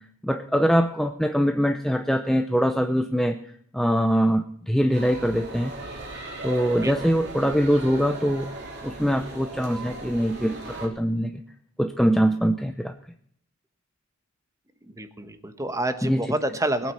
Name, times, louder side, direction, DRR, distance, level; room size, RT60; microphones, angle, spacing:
voice 1, 0.2-3.4 3.7-5.7 6.4-8.5 8.8-11.4 11.8-12.9 16.0-16.2, equal, ahead, 7 dB, 0.5 m, -23 dB
sound 1, 4.9-10.9, right 2 dB, 50° right, 3.0 m, -37 dB
voice 2, 6.8-7.1 14.9-16.9, right 1 dB, 15° right, 10 dB, 1.1 m, -28 dB
20.5 x 8.9 x 5.6 m, 0.65 s
head